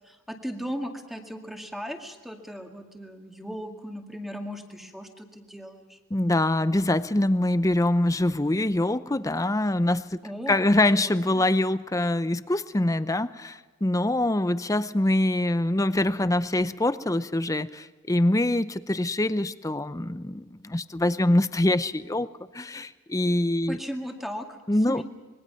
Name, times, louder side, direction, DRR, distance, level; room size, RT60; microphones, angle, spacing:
voice 1, 0.1-6.0 10.2-10.8 11.0-11.5 23.7-24.6 24.9-25.0, equal, ahead, 3 dB, 2.1 m, -37 dB
voice 2, 6.1-10.1 10.5-22.3 22.5-23.8 24.7-25.0, left 1 dB, 15° left, 14 dB, 0.6 m, -24 dB
26.0 x 22.0 x 5.8 m, 1.4 s
head